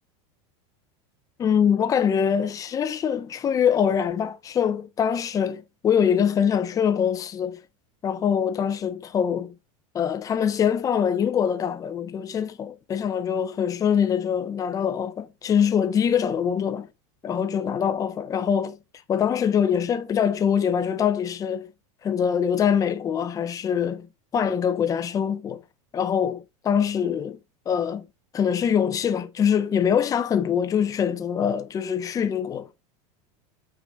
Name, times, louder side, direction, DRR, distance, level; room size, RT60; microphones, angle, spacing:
voice 1, 1.4-7.6 8.0-9.5 9.9-16.9 17.2-18.8 19.1-21.7 22.0-24.1 24.3-25.6 25.9-27.4 27.7-28.0 28.3-32.7, left 8 dB, 20° left, 0.6 m, -24 dB
6.0 x 5.0 x 3.8 m
supercardioid pair, 145°, 17 cm